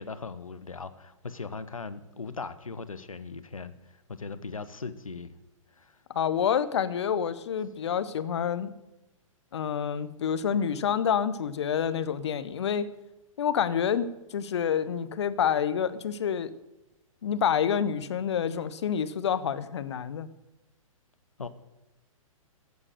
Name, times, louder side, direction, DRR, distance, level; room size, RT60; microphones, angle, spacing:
voice 1, 0.0-3.7 4.1-5.3 5.8-5.9 21.4-21.5, left 4 dB, 75° left, 14 dB, 1.0 m, -39 dB
voice 2, 6.1-8.7 9.5-12.9 13.4-16.5 17.2-20.3, left 8 dB, 50° left, 15 dB, 0.9 m, -28 dB
14.5 x 7.4 x 6.7 m, 0.95 s
figure-of-eight pair, 115°, 18 cm